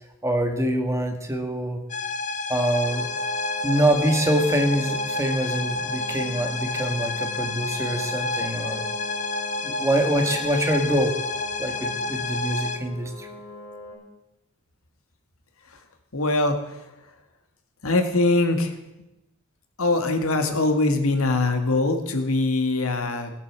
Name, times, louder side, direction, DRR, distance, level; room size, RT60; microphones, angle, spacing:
voice 1, 0.2-1.8 2.5-3.0 3.6-8.8 9.6-11.1 11.6-13.3, right 1 dB, 15° right, 4 dB, 1.7 m, -25 dB
sound 1, 1.9-12.8, left 3 dB, 35° left, 0.9 m, -29 dB
sound 2, 2.8-13.9, left 2 dB, 5° left, 7.1 m, -41 dB
voice 2, 16.1-16.9 17.8-18.7 19.8-23.3, left 2 dB, 75° left, 5 dB, 2.1 m, -22 dB
18.0 x 8.3 x 7.5 m, 0.96 s
head